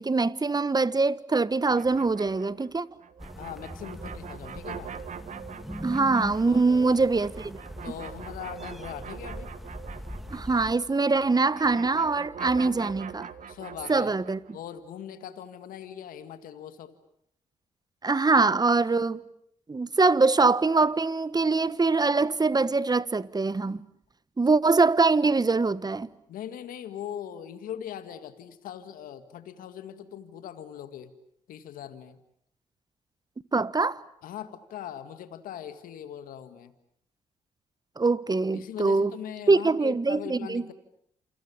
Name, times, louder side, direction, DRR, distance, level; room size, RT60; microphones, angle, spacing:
voice 1, 0.0-2.8 5.8-7.6 10.3-13.3 13.9-14.4 18.0-19.2 19.7-23.8 24.4-26.1 33.5-34.0 38.0-39.1 39.5-40.6, right 3 dB, 25° right, 1.3 m, -23 dB
sound 1, 1.7-10.6 10.9-14.5, right 7 dB, 60° right, 2.0 m, -43 dB
sound 2, 3.2-10.7, equal, ahead, 2.9 m, -41 dB
voice 2, 3.3-4.9 6.5-7.1 7.8-9.5 13.5-14.1 14.5-16.9 26.3-31.1 31.5-32.2 34.2-36.7 38.5-40.7, left 10 dB, 75° left, 1.9 m, -40 dB
28.5 x 28.0 x 7.2 m
hypercardioid pair, 45°, 15 cm